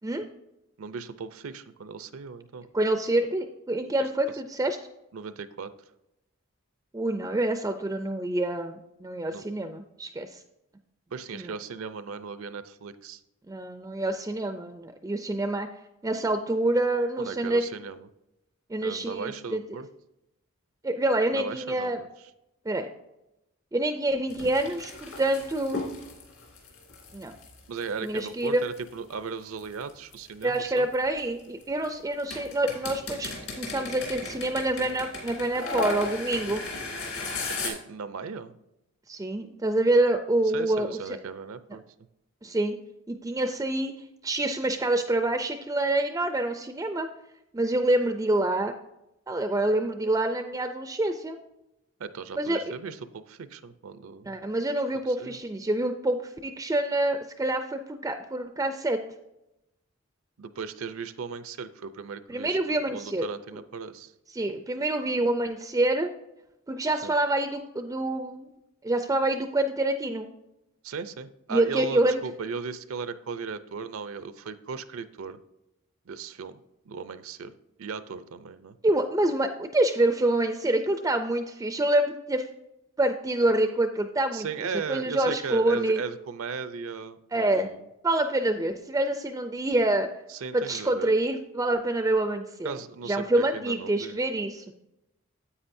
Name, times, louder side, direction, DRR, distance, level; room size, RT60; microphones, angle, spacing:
voice 1, 0.8-2.7 5.1-5.7 9.3-9.4 11.1-13.2 17.2-18.1 18.8-19.9 21.3-22.1 27.7-30.9 37.6-38.5 40.5-41.8 52.0-54.4 55.2-55.4 60.4-64.1 67.0-67.1 70.8-75.4 76.1-76.6 76.9-77.5 77.8-78.8 84.3-87.8 90.3-91.1 92.6-94.2, right 5 dB, 70° right, 13 dB, 0.5 m, -37 dB
voice 2, 2.7-4.8 6.9-10.4 11.3-11.5 13.5-15.7 16.0-17.6 18.7-19.6 20.8-22.0 22.7-22.9 23.7-25.8 27.1-27.3 28.0-28.6 30.4-36.6 39.1-40.9 42.4-42.8 43.1-43.9 44.2-47.1 47.5-48.7 49.3-51.4 52.3-52.7 54.3-59.0 62.3-63.3 64.3-66.1 66.7-68.5 68.8-70.3 71.5-72.2 78.8-82.4 83.0-84.5 84.9-86.0 87.3-87.7 88.0-90.1 90.5-92.8 93.0-94.7, right 1 dB, 15° right, 7 dB, 0.3 m, -26 dB
sound 1, 24.3-28.9 29.6-31.8 32.2-37.7, left 3 dB, 65° left, 2.5 m, -36 dB
9.8 x 8.2 x 2.6 m, 0.89 s
head